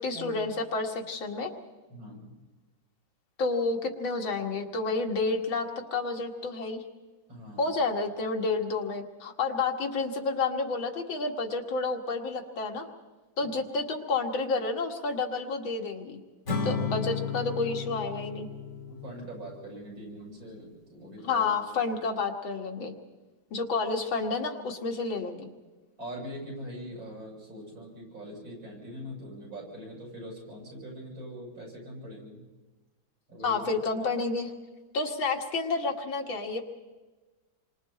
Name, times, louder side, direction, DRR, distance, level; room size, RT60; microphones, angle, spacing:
voice 1, 0.0-1.5 3.4-6.8 7.6-12.9 13.4-16.2 16.6-18.5 21.2-22.9 23.5-25.5 33.4-34.5 34.9-36.6, left 3 dB, 85° left, 3 dB, 2.6 m, -30 dB
voice 2, 1.9-2.3 7.3-7.8 13.4-13.5 18.9-21.5 21.9-22.0 26.0-32.4 33.3-33.7, equal, 85° right, -3 dB, 8.6 m, -42 dB
Acoustic guitar / Strum, 16.5-19.8, left 5 dB, 35° left, 2.7 m, -33 dB
28.5 x 25.0 x 4.3 m, 1.2 s
omnidirectional pair, 2.1 m